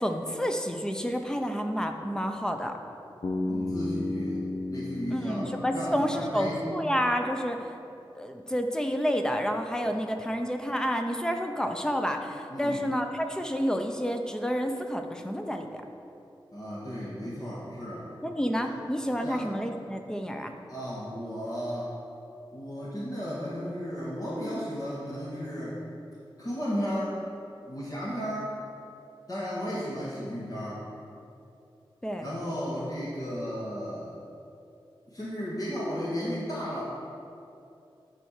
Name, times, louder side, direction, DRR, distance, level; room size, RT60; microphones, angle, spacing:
voice 1, 0.0-2.7 5.1-7.7 8.2-15.8 18.2-20.5 32.0-32.3, equal, 10° left, 4 dB, 0.7 m, -29 dB
Bass guitar, 3.2-7.3, left 2 dB, 70° left, 0.8 m, -34 dB
voice 2, 3.5-4.4 4.7-6.7 12.5-12.8 16.5-18.1 19.2-19.5 20.7-21.9 22.5-25.8 26.4-27.2 27.7-28.5 29.3-30.8 32.2-34.1 35.1-36.8, equal, 40° left, -8 dB, 1.8 m, -34 dB
10.5 x 4.4 x 6.6 m, 2.7 s
wide cardioid pair, 95°, 9 cm